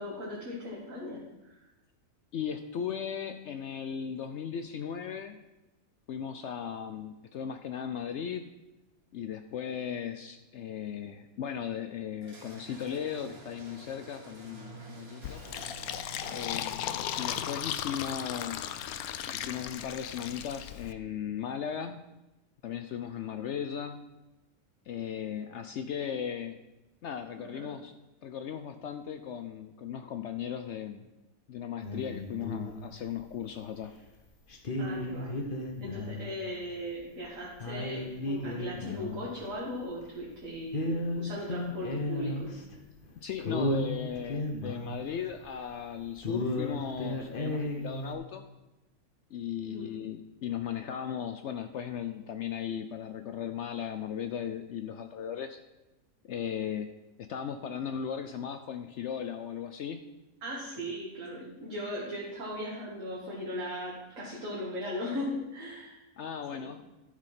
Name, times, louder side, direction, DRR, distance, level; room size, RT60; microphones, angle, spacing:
voice 1, 0.0-1.7 27.4-27.7 34.8-35.4 35.8-40.9 41.2-42.5 49.6-49.9 60.4-66.0 66.5-66.7, left 1 dB, 65° right, -5 dB, 2.2 m, -38 dB
voice 2, 2.3-5.4 6.1-8.5 9.1-15.4 16.3-18.8 19.3-22.0 22.6-24.0 24.9-26.6 27.0-27.9 28.2-31.1 31.5-33.9 43.2-48.4 49.3-55.6 56.2-56.9 57.2-60.0 66.2-66.8, left 8 dB, 65° left, 8 dB, 0.8 m, -37 dB
sound 1, 12.2-17.0, right 2 dB, 85° right, 2.7 m, -49 dB
Fill (with liquid), 15.2-20.9, left 10 dB, 90° left, 1.1 m, -36 dB
sound 2, 31.8-33.4 33.8-33.9 34.5-36.4 36.6-36.8 37.2-37.3 37.6-40.4 40.7-42.8 43.0-43.1 43.4-45.8 46.2-48.2, left 1 dB, 40° left, 1.1 m, -34 dB
12.0 x 4.9 x 5.8 m, 1.0 s
omnidirectional pair, 1.5 m